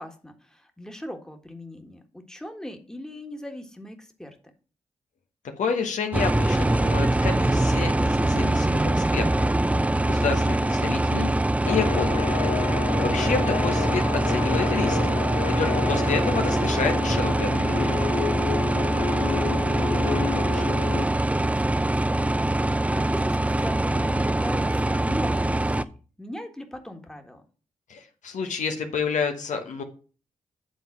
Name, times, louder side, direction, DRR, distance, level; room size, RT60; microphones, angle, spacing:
voice 1, 0.0-4.4 13.5-13.8 19.6-25.7 26.2-27.4, left 1 dB, 5° left, 4 dB, 1.5 m, -39 dB
voice 2, 5.6-9.3 10.0-11.3 11.7-12.3 13.0-15.1 15.6-18.1 27.9-29.8, left 5 dB, 75° left, 4 dB, 1.1 m, -29 dB
sound 1, 6.1-25.8, right 1 dB, 10° right, 0.4 m, -23 dB
sound 2, 11.6-21.0, left 8 dB, 60° left, 0.5 m, -31 dB
8.5 x 3.7 x 5.9 m, 0.38 s
cardioid pair, 50°, 13 cm